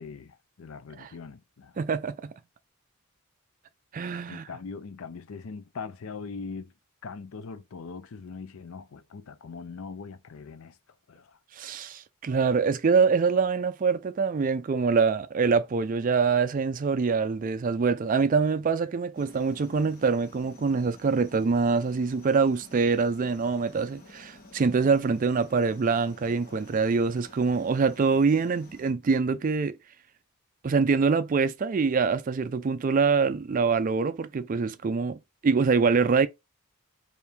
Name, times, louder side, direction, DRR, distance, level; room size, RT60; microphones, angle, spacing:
voice 1, 0.0-1.8 4.3-6.7 7.0-10.8 11.1-11.4, left 5 dB, 70° left, 0.5 m, -41 dB
voice 2, 1.8-2.3 3.9-4.4 11.6-29.8 30.6-36.3, right 5 dB, 40° right, 0.3 m, -25 dB
sound 1, 19.1-28.9, left 2 dB, 40° left, 1.1 m, -51 dB
3.4 x 2.6 x 4.5 m
head